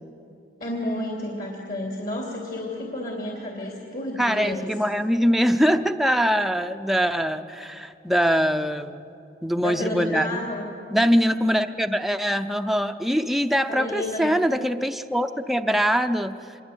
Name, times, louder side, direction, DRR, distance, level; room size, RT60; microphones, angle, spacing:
voice 1, 0.6-4.7 9.6-10.7 13.7-14.3, left 1 dB, 55° left, -1 dB, 3.0 m, -31 dB
voice 2, 4.2-9.1 9.4-10.4 10.9-16.3, equal, ahead, 7 dB, 0.6 m, -23 dB
25.5 x 22.5 x 8.2 m, 2.7 s
head